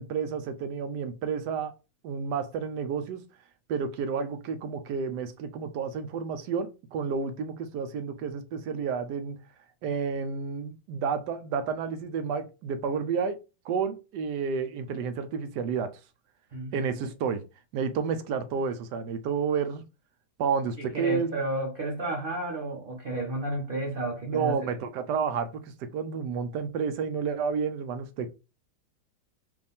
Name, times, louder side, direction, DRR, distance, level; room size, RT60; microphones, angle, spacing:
voice 1, 0.0-1.7 2.0-3.2 3.7-9.4 9.8-13.4 13.6-15.9 16.7-17.4 17.7-19.8 20.4-21.4 24.3-28.3, right 6 dB, 75° right, 1.0 m, -30 dB
voice 2, 20.8-24.7, right 1 dB, 50° right, 0.6 m, -32 dB
4.9 x 2.6 x 3.5 m
omnidirectional pair, 2.0 m